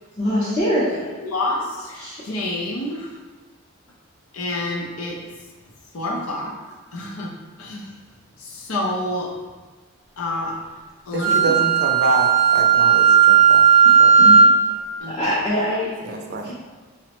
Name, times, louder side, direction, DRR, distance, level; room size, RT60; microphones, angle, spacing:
voice 1, 0.2-1.1 1.9-2.2 13.8-14.4 15.1-15.9 16.4-16.5, equal, 25° left, -10 dB, 0.5 m, -24 dB
voice 2, 1.2-3.1 4.3-5.2 5.9-6.5 6.9-7.3 7.6-7.9 8.4-9.3 10.2-10.6 11.1-11.6 15.0-15.4, left 1 dB, 90° left, 0 dB, 0.6 m, -28 dB
voice 3, 11.1-13.6 14.0-14.3 16.0-16.5, right 2 dB, 50° right, 2 dB, 0.4 m, -26 dB
Wind instrument woodwind instrument, 11.2-14.6, right 6 dB, ahead, 0.8 m, -14 dB
4.9 x 2.1 x 2.9 m, 1.3 s
head